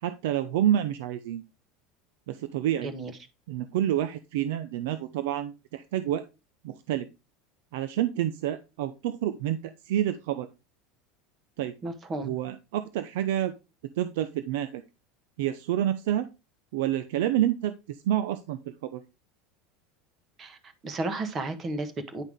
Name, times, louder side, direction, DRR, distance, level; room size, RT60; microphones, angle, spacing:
voice 1, 0.0-1.4 2.3-2.9 3.5-6.2 6.6-7.1 7.7-10.5 11.6-11.7 12.2-13.5 14.0-14.8 15.4-16.3 16.7-19.0, right 11 dB, 70° right, 0.7 m, -28 dB
voice 2, 2.8-3.1 11.8-12.3 20.4-20.6 20.8-22.2, right 2 dB, 20° right, 1.1 m, -33 dB
10.0 x 5.6 x 3.6 m
supercardioid pair, 175°, 0 cm